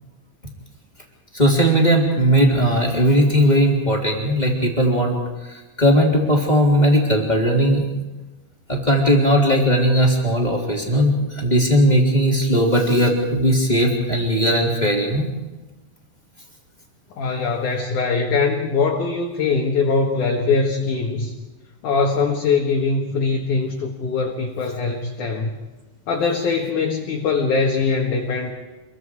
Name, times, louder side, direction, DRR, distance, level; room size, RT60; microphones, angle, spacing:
voice 1, 1.3-5.2 5.8-7.9 8.7-15.3, equal, 10° left, -1 dB, 3.1 m, -18 dB
voice 2, 17.2-21.3 21.8-25.6 26.1-28.5, left 4 dB, 60° left, 0 dB, 2.7 m, -22 dB
27.0 x 23.0 x 4.9 m, 1.1 s
omnidirectional pair, 4.7 m